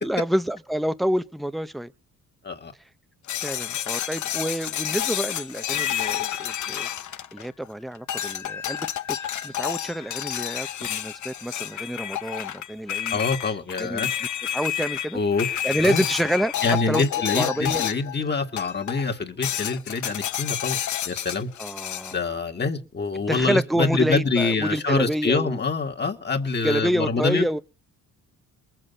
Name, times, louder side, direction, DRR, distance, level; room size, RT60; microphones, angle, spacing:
voice 1, 0.0-1.9 3.4-6.9 7.3-8.9 9.4-13.2 13.8-14.3 14.5-15.2 15.4-17.0 17.3-17.8 21.6-22.2 23.3-25.6 26.6-27.6, equal, ahead, 0.7 m, -27 dB
sound 1, 3.3-7.7 8.1-18.2 18.6-19.1 19.4-22.2, left 11 dB, 60° left, 0.9 m, -30 dB
voice 2, 13.1-14.1 15.1-15.5 15.8-16.0 16.6-20.8 21.1-21.5 22.1-27.4, left 4 dB, 30° left, 2.0 m, -25 dB
22.0 x 7.7 x 5.5 m
cardioid pair, 110°, 33 cm